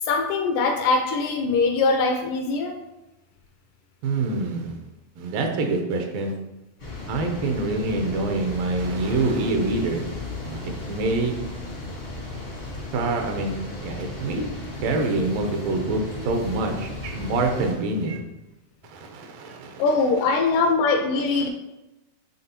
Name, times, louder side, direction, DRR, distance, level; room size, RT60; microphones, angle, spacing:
voice 1, 0.0-2.8 19.8-21.5, left 4 dB, 80° left, 5 dB, 1.9 m, -22 dB
voice 2, 4.0-4.8 5.2-6.3 7.1-10.1 10.4-11.4 12.9-14.4 14.8-18.2 18.9-19.8, right 3 dB, 80° right, 3 dB, 2.5 m, -26 dB
sound 1, 6.8-17.7, left 2 dB, 55° left, 0.6 m, -35 dB
9.2 x 3.6 x 2.9 m, 0.97 s
omnidirectional pair, 4.0 m